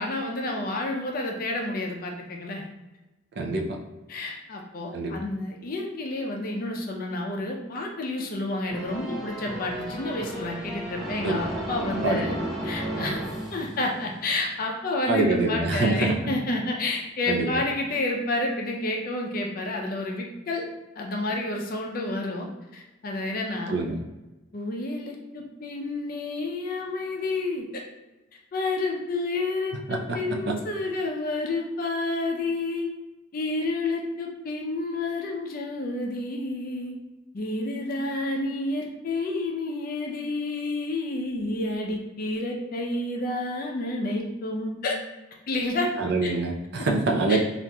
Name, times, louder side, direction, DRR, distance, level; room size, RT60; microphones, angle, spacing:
voice 1, 0.0-2.7 4.1-12.4 12.6-13.2 13.5-20.7 21.0-22.5 22.7-23.8 24.5-27.7 28.5-32.9 33.3-37.0 37.3-45.0 45.5-45.9 46.2-46.3 47.3-47.4, left 2 dB, 45° left, 0 dB, 0.4 m, -30 dB
sound 1, 8.7-14.3, right 1 dB, 5° right, 0.8 m, -34 dB
voice 2, 15.1-16.3 17.3-17.5 23.7-24.0 29.9-30.2 30.5-30.6 46.0-47.4, right 3 dB, 55° right, 1 dB, 0.4 m, -25 dB
2.9 x 2.4 x 2.2 m, 1.1 s
head